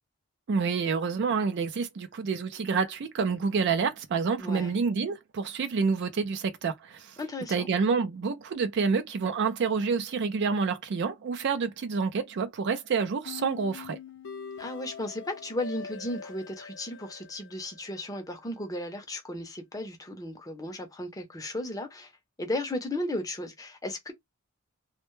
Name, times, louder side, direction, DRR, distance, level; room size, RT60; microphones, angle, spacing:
voice 1, 0.5-7.1 7.5-14.0, right 5 dB, 55° right, 0.4 m, -28 dB
voice 2, 4.4-4.7 7.2-7.7 14.6-22.1 22.4-24.1, left 1 dB, 15° left, 0.6 m, -35 dB
sound 1, 13.2-18.3, left 6 dB, 60° left, 0.5 m, -43 dB
2.1 x 2.1 x 3.0 m
head